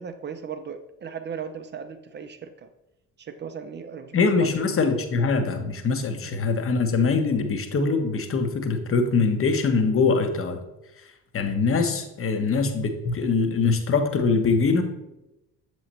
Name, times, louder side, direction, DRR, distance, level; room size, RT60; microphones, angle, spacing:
voice 1, 0.0-2.7 3.2-4.5 6.2-6.3, right 7 dB, 25° right, 9 dB, 0.4 m, -37 dB
voice 2, 4.1-10.6 11.3-14.8, left 4 dB, 30° left, 7 dB, 0.8 m, -23 dB
7.3 x 3.0 x 4.3 m, 0.96 s
figure-of-eight pair, 50°, 47 cm